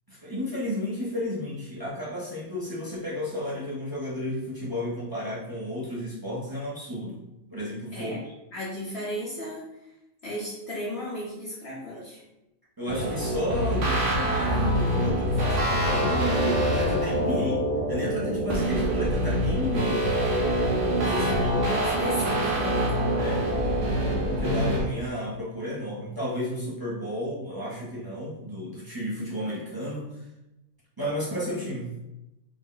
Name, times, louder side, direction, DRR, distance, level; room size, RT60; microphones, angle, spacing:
voice 1, 0.1-7.2 7.5-8.2 11.9-12.0 12.8-20.1 21.0-21.1 23.2-23.4 24.3-30.2 31.0-32.0, left 1 dB, 25° right, -7 dB, 0.5 m, -32 dB
voice 2, 8.5-9.9 10.2-12.2 21.0-22.9, left 1 dB, 55° left, -7 dB, 1.0 m, -34 dB
sound 1, 12.9-24.8, right 1 dB, 65° right, 1.0 m, -25 dB
3.6 x 2.1 x 3.8 m, 0.93 s
omnidirectional pair, 1.5 m